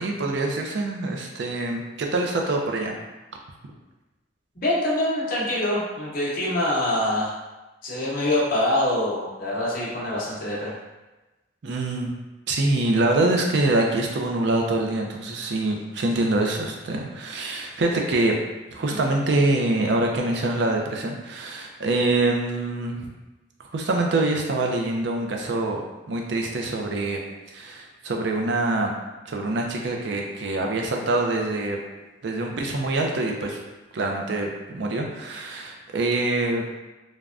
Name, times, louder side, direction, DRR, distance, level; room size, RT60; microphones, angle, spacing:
voice 1, 0.0-2.9 11.6-12.1 12.5-18.4 18.7-23.1 23.7-25.8 26.1-27.2 27.5-28.9 29.3-31.8 32.2-33.6 33.9-36.6, right 2 dB, 60° right, 1 dB, 0.4 m, -25 dB
voice 2, 4.5-7.3 7.8-10.7, left 1 dB, 45° left, -6 dB, 0.7 m, -25 dB
3.3 x 2.1 x 2.4 m, 1.1 s
head